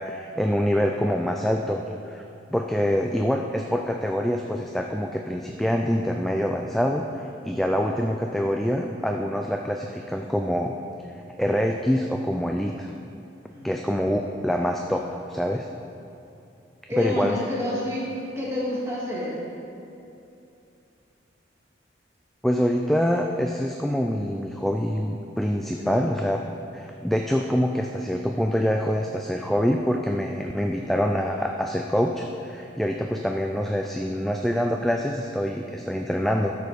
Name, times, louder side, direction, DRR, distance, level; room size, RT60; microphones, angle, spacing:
voice 1, 0.0-2.2 2.5-10.7 11.4-12.9 13.6-15.7 17.0-17.4 22.4-26.4 26.7-36.5, equal, ahead, 2 dB, 0.3 m, -25 dB
voice 2, 13.5-14.1 16.9-18.1 18.4-19.4 25.8-25.9, left 1 dB, 15° right, -6 dB, 1.9 m, -29 dB
12.5 x 6.8 x 4.9 m, 2.7 s
head